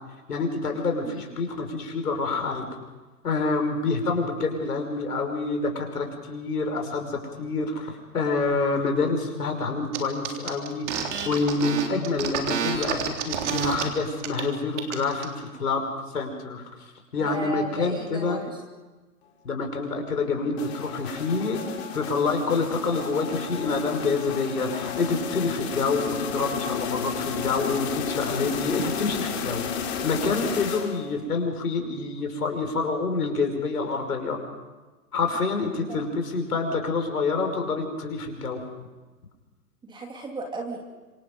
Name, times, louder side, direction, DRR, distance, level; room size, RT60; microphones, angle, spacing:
voice 1, 0.3-2.6 3.2-15.9 16.1-16.6 17.1-18.4 19.4-21.6 21.9-34.4 35.1-38.6, left 3 dB, 70° left, 4 dB, 5.7 m, -27 dB
sound 1, 9.9-10.0 10.2-13.8 14.2-14.4 14.7-15.3, right 7 dB, 45° right, 3.5 m, -29 dB
voice 2, 17.2-18.5 35.9-36.0 39.8-40.8, right 1 dB, 10° right, 2 dB, 2.6 m, -35 dB
sound 2, 20.6-31.2, left 6 dB, 40° left, 3.7 m, -32 dB
27.0 x 25.5 x 5.4 m, 1.2 s
hypercardioid pair, 135°, 47 cm